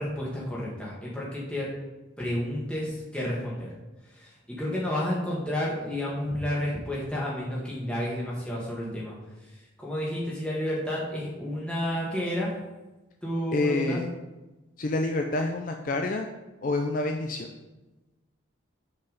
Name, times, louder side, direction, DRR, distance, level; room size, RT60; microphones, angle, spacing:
voice 1, 0.0-1.7 2.2-3.7 4.1-9.2 9.8-12.5 13.2-14.0, left 1 dB, 5° left, -5 dB, 1.7 m, -31 dB
voice 2, 13.5-14.1 14.8-16.3 16.6-17.5, left 2 dB, 40° left, 4 dB, 0.4 m, -27 dB
6.5 x 4.6 x 5.2 m, 1.1 s
head